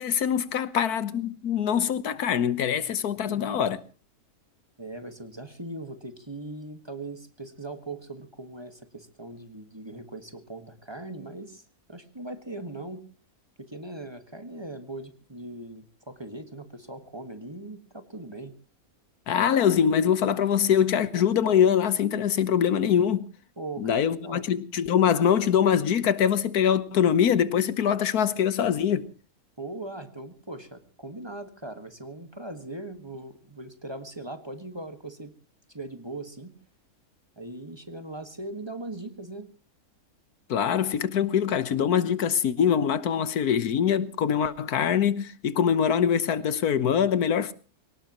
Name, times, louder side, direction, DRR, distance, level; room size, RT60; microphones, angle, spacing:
voice 1, 0.0-3.8 19.3-23.3 23.8-29.1 40.5-47.5, left 8 dB, 85° left, 1.6 m, -23 dB
voice 2, 3.1-3.7 4.8-11.6 11.9-13.0 13.6-18.5 23.6-24.5 29.6-35.3 35.7-36.5 37.4-39.5, right 2 dB, 20° right, 1.6 m, -40 dB
23.5 x 18.5 x 3.0 m
omnidirectional pair, 1.6 m